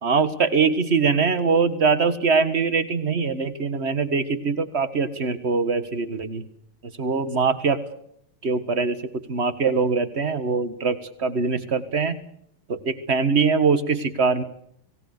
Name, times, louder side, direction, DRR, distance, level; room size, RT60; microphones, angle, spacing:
voice 1, 0.0-6.4 7.0-7.8 8.4-9.0 9.3-12.2 12.7-14.4, right 5 dB, 35° right, 12 dB, 1.6 m, -22 dB
29.0 x 18.5 x 6.6 m, 0.73 s
omnidirectional pair, 2.4 m